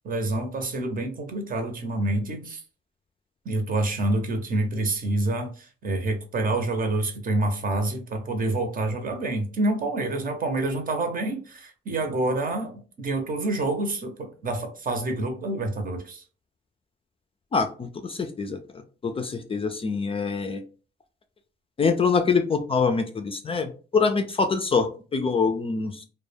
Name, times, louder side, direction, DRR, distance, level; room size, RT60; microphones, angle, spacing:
voice 1, 0.0-2.6 3.4-16.2, right 2 dB, 45° right, 5 dB, 0.7 m, -27 dB
voice 2, 17.5-18.6 19.0-20.6 21.8-26.0, left 5 dB, 30° left, 6 dB, 0.4 m, -25 dB
2.2 x 2.2 x 3.2 m, 0.38 s
cardioid pair, 90°, 20 cm